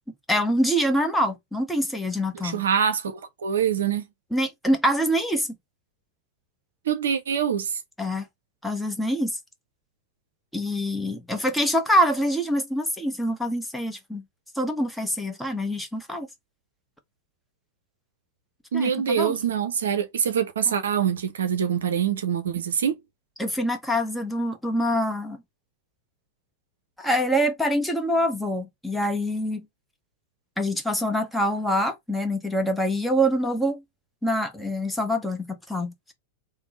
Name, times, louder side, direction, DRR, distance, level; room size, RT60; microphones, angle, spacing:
voice 1, 0.3-2.6 4.3-5.5 8.0-8.2 8.6-9.3 10.5-14.2 14.6-16.3 18.7-19.4 23.4-25.4 27.0-29.7 30.6-33.8 34.2-35.9, equal, 5° left, 0.8 m, -25 dB
voice 2, 2.4-4.0 6.9-7.7 18.7-23.0, right 8 dB, 65° right, 0.5 m, -24 dB
3.4 x 2.0 x 3.8 m
figure-of-eight pair, 90°, 0 cm